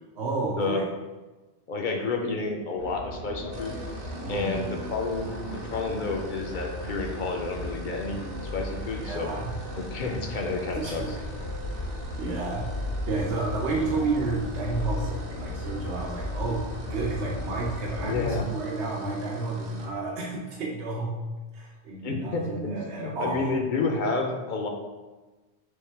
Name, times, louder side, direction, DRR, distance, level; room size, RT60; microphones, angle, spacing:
voice 1, 0.2-0.8 4.2-4.6 9.0-9.5 10.8-11.1 12.2-12.7 13.1-16.6 16.9-21.1 21.5-23.5, right 3 dB, 80° right, -3 dB, 0.9 m, -31 dB
voice 2, 1.7-3.7 4.3-8.2 8.5-9.3 9.8-11.2 18.0-18.5 22.0-24.7, left 3 dB, 55° left, 2 dB, 0.7 m, -30 dB
sound 1, 2.8-18.4, left 1 dB, 75° left, 1.3 m, -35 dB
sound 2, 3.5-20.0, right 3 dB, 45° right, 0.6 m, -47 dB
3.5 x 3.2 x 4.4 m, 1.2 s
omnidirectional pair, 1.1 m